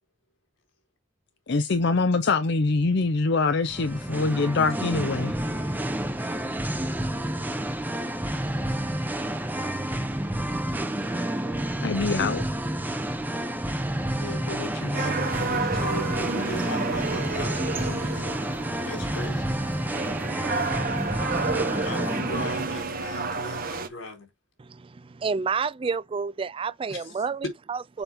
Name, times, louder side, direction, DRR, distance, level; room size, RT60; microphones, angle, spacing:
voice 1, 1.5-5.4 11.8-12.4, left 3 dB, 60° left, 0.6 m, -24 dB
Singing, 3.6-22.8, right 1 dB, 10° right, 0.7 m, -29 dB
voice 2, 14.1-18.3 18.9-19.4 21.7-24.3 26.9-27.0, left 1 dB, 85° left, 4.0 m, -36 dB
sound 1, 14.9-23.9, right 4 dB, 45° right, 1.1 m, -31 dB
voice 3, 24.6-28.0, right 5 dB, 25° right, 0.3 m, -30 dB
7.0 x 5.3 x 3.5 m
head